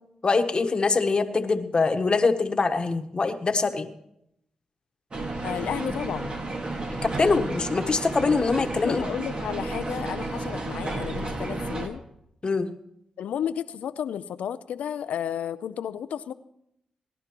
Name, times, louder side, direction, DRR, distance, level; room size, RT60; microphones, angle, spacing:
voice 1, 0.2-3.9 7.0-9.0 12.4-12.7, left 4 dB, 40° left, 8 dB, 1.2 m, -23 dB
sound 1, 5.1-11.9, right 2 dB, 45° right, 1.8 m, -32 dB
voice 2, 5.4-6.3 8.8-12.0 13.2-16.3, left 9 dB, 80° left, 13 dB, 0.5 m, -32 dB
18.5 x 11.0 x 3.0 m, 0.78 s
supercardioid pair, 50°, 2 cm